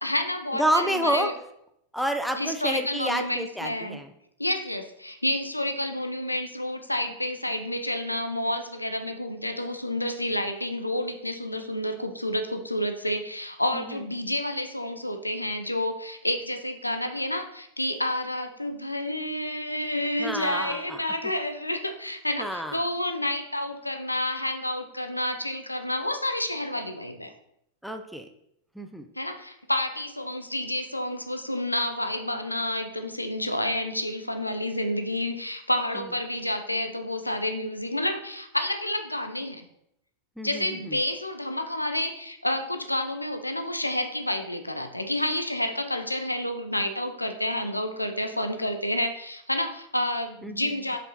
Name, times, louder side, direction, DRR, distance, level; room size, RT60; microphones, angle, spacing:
voice 1, 0.0-1.3 2.3-4.0 4.4-27.3 29.2-39.7 40.4-51.0, left 1 dB, 85° left, 7 dB, 0.8 m, -29 dB
voice 2, 0.6-1.3 1.9-4.1 13.7-13.8 20.2-21.0 22.4-22.8 27.8-28.3 28.8-29.1 40.4-41.0 50.4-50.7, right 1 dB, ahead, 5 dB, 0.7 m, -29 dB
6.3 x 5.5 x 4.3 m, 0.76 s
figure-of-eight pair, 90°, 0 cm